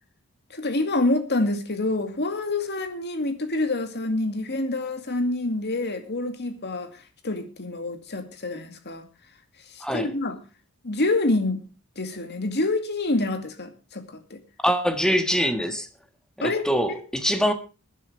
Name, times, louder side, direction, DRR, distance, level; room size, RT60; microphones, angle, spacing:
voice 1, 0.5-6.9 7.2-9.0 9.7-10.4 10.8-11.7 12.0-14.4 16.4-16.6, left 2 dB, 50° left, 2.3 m, -27 dB
voice 2, 9.8-10.1 14.6-15.9 16.4-17.5, equal, 5° left, 1.5 m, -23 dB
23.0 x 10.0 x 3.3 m
head